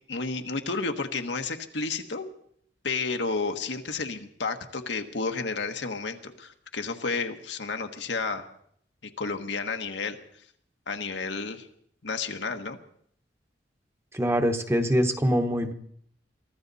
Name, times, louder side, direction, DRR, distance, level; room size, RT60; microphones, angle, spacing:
voice 1, 0.1-2.2 2.8-8.5 9.2-10.2 10.9-11.7 12.0-12.8, left 4 dB, 75° left, 6 dB, 1.3 m, -31 dB
voice 2, 14.1-15.7, equal, 15° right, 6 dB, 1.1 m, -24 dB
23.5 x 15.0 x 4.1 m, 0.66 s
head